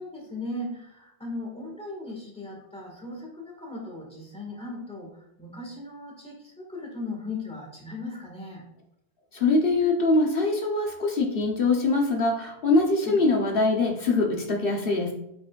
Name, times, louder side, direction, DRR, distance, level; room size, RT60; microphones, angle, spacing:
voice 1, 0.0-8.6 13.0-13.2, left 2 dB, 5° left, -3 dB, 1.9 m, -37 dB
voice 2, 9.3-15.1, left 3 dB, 60° left, 1 dB, 1.3 m, -23 dB
8.3 x 5.4 x 2.5 m, 0.83 s
omnidirectional pair, 1.1 m